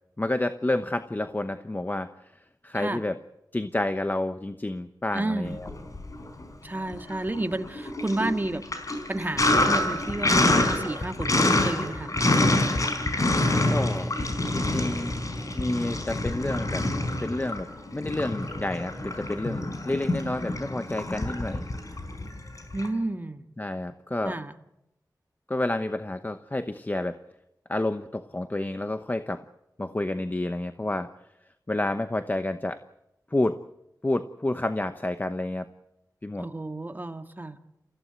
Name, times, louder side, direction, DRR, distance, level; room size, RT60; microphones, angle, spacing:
voice 1, 0.2-3.2 3.5-5.7 13.7-14.1 14.5-15.1 15.5-16.9 17.2-21.7 23.6-24.4 25.5-27.2 27.7-29.4 29.8-31.1 31.7-32.8 33.3-33.6 34.0-35.7 36.2-36.5, left 1 dB, 25° left, 10 dB, 0.9 m, -29 dB
voice 2, 5.1-5.6 6.6-8.6 9.1-12.5 22.7-23.4 24.2-24.5 36.4-37.6, right 2 dB, 25° right, 7 dB, 1.7 m, -31 dB
Sink (filling or washing), 5.5-6.4 6.8-22.9, left 2 dB, 50° left, 4.5 m, -26 dB
28.0 x 16.0 x 8.0 m, 0.86 s
wide cardioid pair, 80°, 7 cm